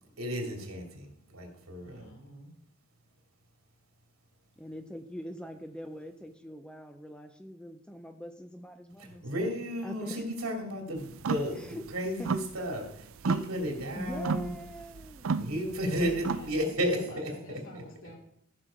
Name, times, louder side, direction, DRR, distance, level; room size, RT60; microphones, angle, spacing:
voice 1, 0.2-2.1 9.2-14.5 15.4-17.6, equal, 80° right, 2 dB, 2.7 m, -33 dB
voice 2, 1.8-2.5 15.4-18.2, equal, 60° left, 0 dB, 2.6 m, -47 dB
voice 3, 4.6-9.3 9.8-10.2 11.5-12.3 13.9-15.4, equal, 5° left, 7 dB, 0.6 m, -43 dB
sound 1, 11.1-11.5 11.9-12.9 13.2-16.6, right 4 dB, 65° right, 0.5 m, -33 dB
14.0 x 6.3 x 5.1 m, 0.71 s
head